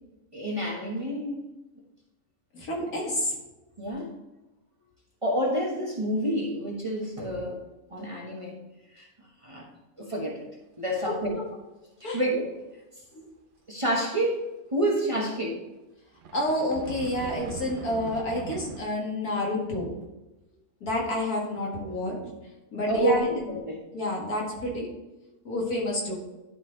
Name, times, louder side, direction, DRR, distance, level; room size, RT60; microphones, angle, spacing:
voice 1, 0.3-1.4 3.8-4.1 5.2-7.6 7.9-8.6 8.9-9.1 9.4-9.7 10.0-10.4 10.8-11.4 12.0-12.5 13.7-15.6 22.9-23.8, right 1 dB, 25° right, -2 dB, 1.2 m, -28 dB
voice 2, 2.5-3.3 11.0-11.1 12.0-12.2 13.1-13.3 16.3-20.1 20.8-22.3 22.7-23.5 23.9-24.9 25.4-26.2, left 1 dB, 80° left, -2 dB, 2.4 m, -29 dB
sound 1, 16.2-18.8, right 5 dB, 60° right, 0.5 m, -40 dB
11.5 x 4.4 x 3.9 m, 1.0 s
omnidirectional pair, 1.6 m